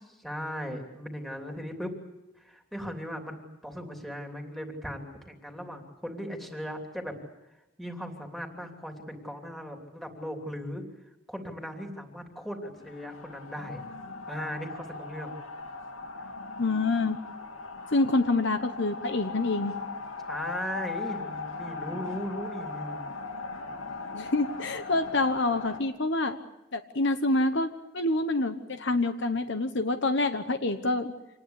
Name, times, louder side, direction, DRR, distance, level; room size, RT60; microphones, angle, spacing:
voice 1, 0.2-2.0 2.4-7.1 7.8-10.8 11.3-13.9 14.3-15.4 16.1-16.3 20.3-23.0, equal, ahead, 3 dB, 3.0 m, -38 dB
sound 1, 12.8-25.8, left 4 dB, 70° left, 2.6 m, -39 dB
voice 2, 16.6-17.2 17.9-19.7 24.1-26.4 26.7-31.1, left 2 dB, 55° left, 9 dB, 1.1 m, -27 dB
26.5 x 19.5 x 8.4 m, 0.96 s
head